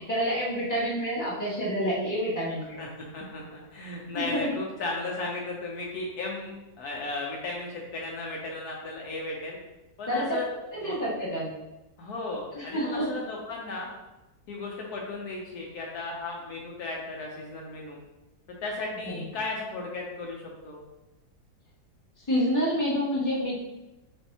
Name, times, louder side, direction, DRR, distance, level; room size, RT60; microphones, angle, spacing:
voice 1, 0.1-2.8 4.1-4.6 10.1-10.3 10.7-11.5 12.5-13.1 22.3-23.6, equal, 10° left, -8 dB, 1.4 m, -28 dB
voice 2, 2.8-9.6 10.0-10.5 10.8-11.0 12.0-13.9 14.5-18.0 18.5-20.8, left 3 dB, 70° left, -2 dB, 1.2 m, -35 dB
6.7 x 2.7 x 2.8 m, 1.0 s
omnidirectional pair, 1.8 m